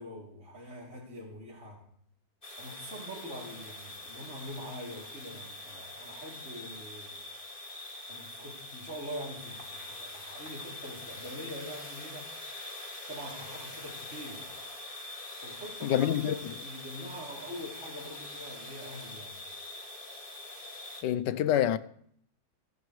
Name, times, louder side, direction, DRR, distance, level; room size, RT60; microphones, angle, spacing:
voice 1, 0.0-1.8 2.6-7.2 8.1-12.3 13.1-14.5 15.4-19.4, equal, 40° right, 3.7 m, -44 dB
sound 1, 2.4-21.0, left 2 dB, 30° left, 2.6 m, -44 dB
voice 2, 15.8-16.4 21.0-21.8, left 11 dB, 75° left, 1.3 m, -26 dB
29.0 x 10.5 x 3.3 m
omnidirectional pair, 2.0 m